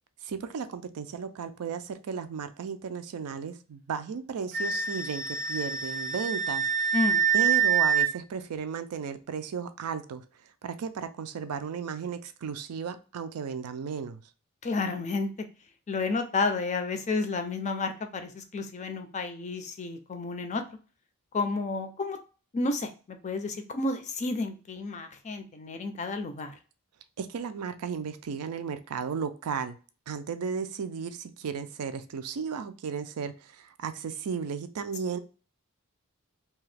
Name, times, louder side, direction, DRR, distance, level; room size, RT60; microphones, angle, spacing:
voice 1, 0.2-7.0 7.3-10.2 10.6-14.2 27.2-29.8 30.1-35.2, right 6 dB, 85° right, 11 dB, 0.4 m, -35 dB
Wind instrument woodwind instrument, 4.5-8.1, right 7 dB, 35° right, 0.6 m, -26 dB
voice 2, 6.9-7.2 14.6-15.3 15.9-20.6 21.3-22.2 22.5-26.5, left 3 dB, 30° left, 7 dB, 0.4 m, -31 dB
2.8 x 2.3 x 3.2 m, 0.36 s
head